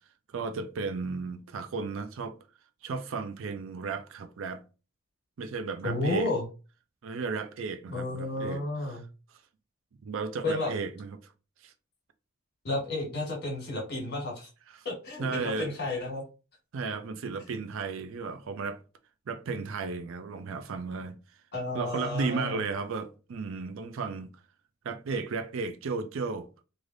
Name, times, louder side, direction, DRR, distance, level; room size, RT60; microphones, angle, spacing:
voice 1, 0.3-2.4 2.8-4.6 5.4-6.3 7.0-9.0 10.0-11.2 11.6-11.7 15.2-15.7 16.7-18.8 19.3-21.2 21.7-24.3 24.8-26.5, right 4 dB, 70° right, 0.4 m, -34 dB
voice 2, 5.8-6.5 7.9-9.0 10.4-10.7 12.6-14.5 14.8-16.2 21.5-22.6, left 2 dB, 55° left, 1.3 m, -32 dB
3.3 x 2.5 x 2.5 m
head